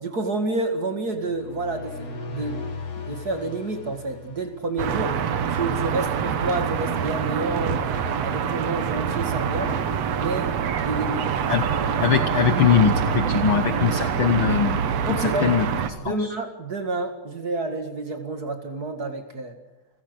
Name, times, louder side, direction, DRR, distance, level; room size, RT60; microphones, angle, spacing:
voice 1, 0.0-2.7 3.0-5.2 5.5-9.8 10.1-10.5 10.8-11.3 15.0-15.7 16.0-19.5, right 2 dB, 35° right, 6 dB, 2.2 m, -29 dB
sound 1, 1.1-5.0, left 4 dB, 50° left, 4.2 m, -37 dB
sound 2, 4.8-15.9, right 7 dB, 60° right, 2.1 m, -25 dB
voice 2, 12.0-14.8 15.1-15.7 16.0-16.3, left 8 dB, 90° left, 9 dB, 1.1 m, -21 dB
29.0 x 16.0 x 8.1 m, 0.97 s
omnidirectional pair, 3.7 m